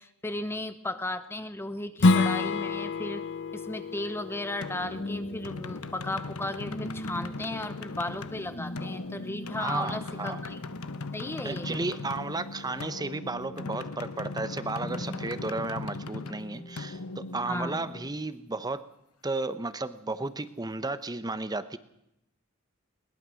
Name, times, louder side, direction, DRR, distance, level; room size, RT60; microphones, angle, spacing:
voice 1, 0.0-3.2 3.5-10.6 11.1-11.7 17.5-17.8, left 1 dB, 10° left, 11 dB, 0.7 m, -35 dB
Strum, 2.0-7.2, left 3 dB, 55° left, 0.7 m, -29 dB
sound 1, 4.6-18.2, left 3 dB, 80° left, 1.1 m, -39 dB
sound 2, 4.8-18.1, equal, 30° left, 1.4 m, -43 dB
voice 2, 9.6-10.4 11.4-18.9 19.2-21.8, right 3 dB, 20° right, 13 dB, 0.9 m, -33 dB
21.5 x 19.0 x 6.3 m, 0.82 s
head